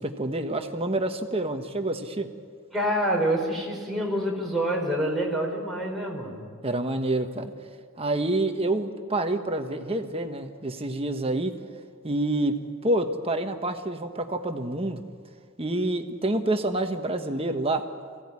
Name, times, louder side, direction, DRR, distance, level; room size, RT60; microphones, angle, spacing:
voice 1, 0.0-2.3 6.6-7.5 8.0-11.5 12.0-12.6 12.8-15.0 15.6-17.9, right 2 dB, 25° right, 6 dB, 1.2 m, -27 dB
voice 2, 2.7-6.5, right 1 dB, ahead, -1 dB, 4.3 m, -27 dB
23.5 x 16.5 x 9.8 m, 2.1 s
head